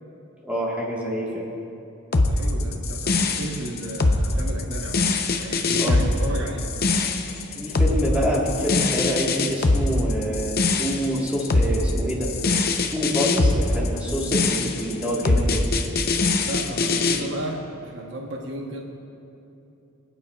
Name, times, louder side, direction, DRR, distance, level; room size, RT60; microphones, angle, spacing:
voice 1, 0.5-1.4 5.8-6.0 7.5-12.3 12.9-15.6, equal, 5° right, -5 dB, 1.4 m, -26 dB
sound 1, 2.1-17.2, left 3 dB, 45° left, 0.7 m, -22 dB
voice 2, 2.1-6.7 16.5-18.8, right 1 dB, 60° right, 0 dB, 1.0 m, -34 dB
25.0 x 9.0 x 2.3 m, 2.8 s
head